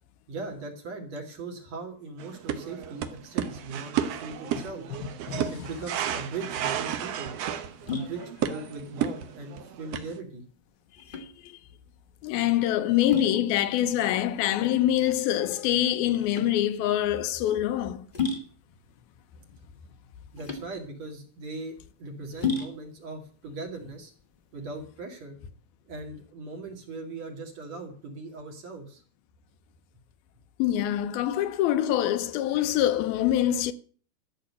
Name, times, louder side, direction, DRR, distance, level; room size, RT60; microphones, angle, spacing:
voice 1, 0.3-4.8 5.5-7.3 7.9-10.4 20.3-24.1 24.5-25.4 25.9-29.0, right 3 dB, 50° right, 3.1 m, -39 dB
sound 1, 2.2-10.2, right 9 dB, 75° right, 1.4 m, -32 dB
voice 2, 5.0-5.5 11.1-11.6 12.2-18.1 30.6-33.7, left 12 dB, 80° left, 2.6 m, -25 dB
sound 2, 6.3-24.8, left 5 dB, 35° left, 0.8 m, -37 dB
13.5 x 6.5 x 8.5 m
omnidirectional pair, 4.3 m